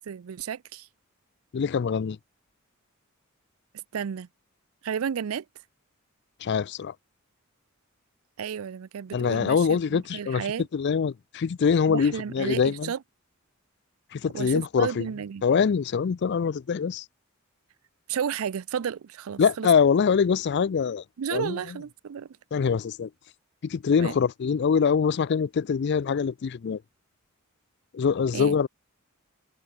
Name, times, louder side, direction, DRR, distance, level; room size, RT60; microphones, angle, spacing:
voice 1, 0.0-0.9 3.9-4.3 4.8-5.4 8.4-10.7 11.9-13.0 14.3-15.5 18.1-19.7 21.2-22.3 24.0-24.1 28.3-28.6, right 7 dB, 80° right, 0.4 m, -32 dB
voice 2, 1.5-2.2 6.4-6.9 9.1-10.5 10.7-12.9 14.1-15.1 15.4-17.0 19.4-21.0 21.3-21.6 22.5-23.1 23.6-26.8 27.9-28.7, left 6 dB, 55° left, 0.4 m, -24 dB
head